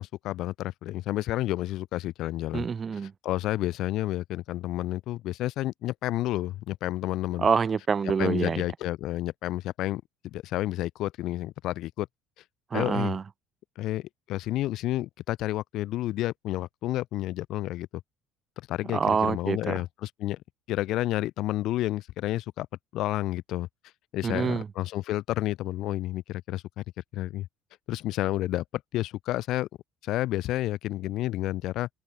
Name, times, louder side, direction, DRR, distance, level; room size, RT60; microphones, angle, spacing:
voice 1, 0.0-2.7 3.2-7.5 8.2-12.1 12.7-13.1 13.8-17.9 18.6-20.4 20.7-22.7 22.9-23.7 24.1-26.8 27.1-27.5 27.9-29.7 30.0-31.9, left 15 dB, 65° left, 1.7 m, -30 dB
voice 2, 2.5-3.1 7.4-8.6 12.7-13.2 18.9-19.8 24.2-24.7, right 6 dB, 30° right, 1.7 m, -26 dB
cardioid pair, 115°, 0 cm